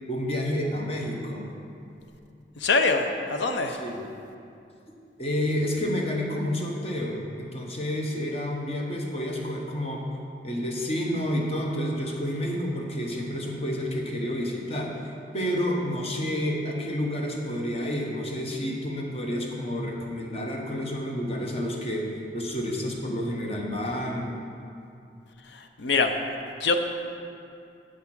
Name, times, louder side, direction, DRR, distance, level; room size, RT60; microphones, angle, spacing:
voice 1, 0.1-1.5 3.7-4.1 5.2-10.0 10.4-14.9 15.3-22.0 22.3-24.3, equal, 35° left, -1 dB, 1.0 m, -29 dB
voice 2, 2.6-3.8 25.5-26.1 26.6-26.8, left 4 dB, 75° left, 6 dB, 0.6 m, -24 dB
7.6 x 5.7 x 6.0 m, 2.6 s
head